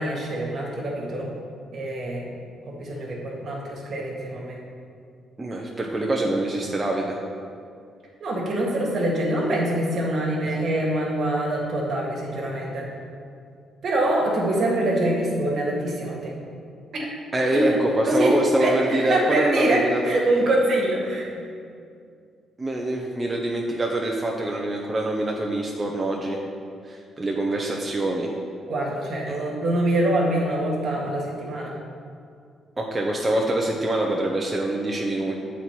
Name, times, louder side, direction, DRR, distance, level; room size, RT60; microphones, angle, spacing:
voice 1, 0.0-1.3 1.7-2.4 2.6-4.6 8.2-12.9 13.8-16.3 16.9-17.1 17.5-17.8 18.0-21.4 28.7-31.8, right 1 dB, 60° right, -2 dB, 1.5 m, -24 dB
voice 2, 5.4-7.2 17.3-20.0 22.6-26.4 26.8-28.3 29.3-29.4 32.8-35.4, right 1 dB, 25° right, -1 dB, 0.7 m, -25 dB
7.8 x 4.1 x 4.4 m, 2.3 s
cardioid pair, 90°, 0 cm